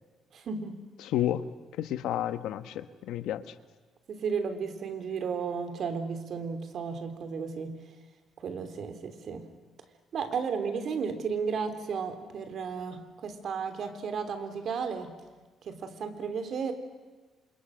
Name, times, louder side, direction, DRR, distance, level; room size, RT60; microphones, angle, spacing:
voice 1, 0.3-0.9 4.1-7.8 8.4-9.5 10.1-15.2 15.6-16.7, right 5 dB, 55° right, 8 dB, 3.3 m, -34 dB
voice 2, 1.0-1.5 1.7-3.5, left 12 dB, 90° left, 12 dB, 1.3 m, -31 dB
29.0 x 26.5 x 6.5 m, 1.3 s
cardioid pair, 130°, 0 cm